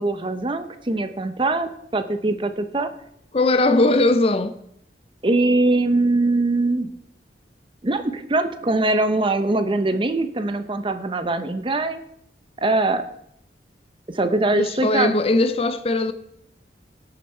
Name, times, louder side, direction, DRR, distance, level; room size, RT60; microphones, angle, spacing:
voice 1, 0.0-2.9 5.2-6.9 7.8-12.0 12.6-13.0 14.1-15.1, right 2 dB, 30° right, 0.7 m, -22 dB
voice 2, 3.3-4.6 14.5-16.1, left 2 dB, 35° left, 0.5 m, -19 dB
17.0 x 6.7 x 4.5 m
head